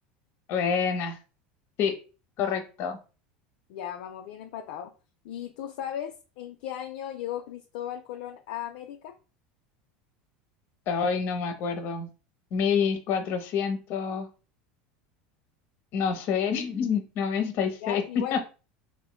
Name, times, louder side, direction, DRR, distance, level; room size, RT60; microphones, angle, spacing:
voice 1, 0.5-1.2 1.8-2.0 2.4-3.0 10.9-12.1 12.5-14.3 15.9-18.5, left 6 dB, 55° left, 0.7 m, -27 dB
voice 2, 3.7-4.9 5.2-9.1 17.8-18.4, left 10 dB, 70° left, 0.3 m, -36 dB
3.6 x 2.5 x 2.2 m
supercardioid pair, 105°, 5 cm